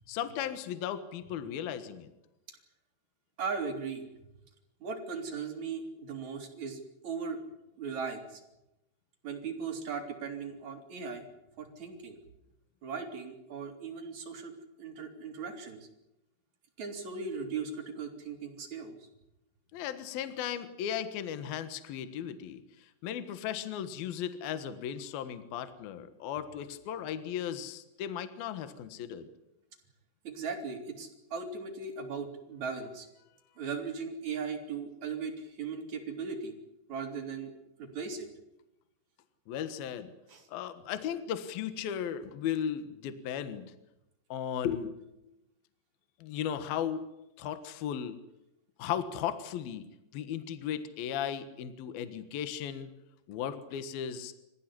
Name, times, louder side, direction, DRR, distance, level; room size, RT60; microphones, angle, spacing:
voice 1, 0.1-2.1 19.7-29.3 39.5-40.1 40.5-43.7 44.3-45.3 46.2-47.0 47.4-48.2 48.8-49.9 50.1-52.9 53.3-54.3, left 9 dB, 65° left, 11 dB, 2.9 m, -36 dB
voice 2, 3.4-4.0 4.8-7.4 7.8-8.4 9.2-11.2 11.6-12.2 12.8-14.5 14.8-15.9 16.8-19.1 30.2-33.1 33.6-36.5 36.9-37.5 37.8-38.3 40.3-40.5, right 5 dB, 40° right, 4 dB, 4.5 m, -38 dB
27.5 x 15.5 x 10.0 m, 0.91 s
omnidirectional pair, 5.4 m